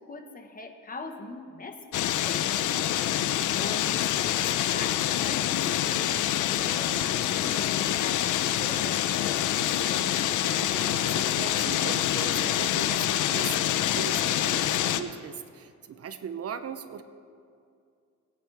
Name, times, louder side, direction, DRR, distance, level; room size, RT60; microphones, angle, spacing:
voice 1, 0.0-3.3 3.6-10.2, left 3 dB, 30° left, 4 dB, 1.5 m, -42 dB
sound 1, 1.9-15.0, left 11 dB, 80° left, 0.7 m, -26 dB
voice 2, 10.4-17.0, right 7 dB, 50° right, 11 dB, 0.8 m, -39 dB
22.0 x 9.2 x 3.5 m, 2.3 s
cardioid pair, 90°, 30 cm